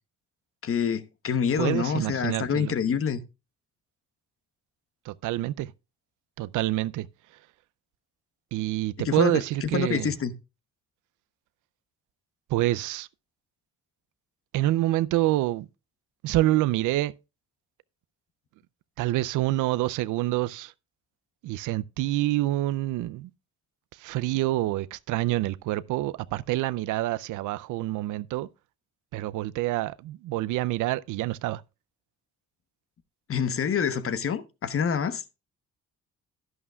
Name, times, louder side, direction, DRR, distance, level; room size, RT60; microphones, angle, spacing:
voice 1, 0.6-3.2 9.0-10.3 33.3-35.2, left 7 dB, 45° left, 1.0 m, -27 dB
voice 2, 1.6-2.8 5.0-5.7 6.4-7.1 8.5-10.1 12.5-13.1 14.5-15.7 16.2-17.1 19.0-20.7 21.4-23.3 23.9-28.5 29.1-31.6, right 16 dB, 85° right, 0.5 m, -27 dB
11.0 x 11.0 x 2.3 m
cardioid pair, 90°, 30 cm